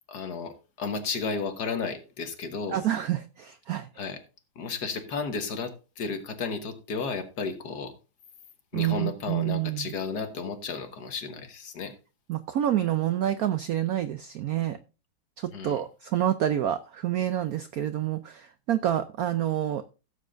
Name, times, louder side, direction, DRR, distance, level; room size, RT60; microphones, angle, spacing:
voice 1, 0.1-2.8 4.0-4.2 4.5-7.9 8.7-11.9 15.5-15.8, left 5 dB, 55° left, 1.7 m, -33 dB
voice 2, 2.7-3.9 8.7-9.8 12.3-14.8 15.4-19.8, right 11 dB, 90° right, 0.8 m, -28 dB
16.5 x 7.5 x 2.5 m
omnidirectional pair, 2.2 m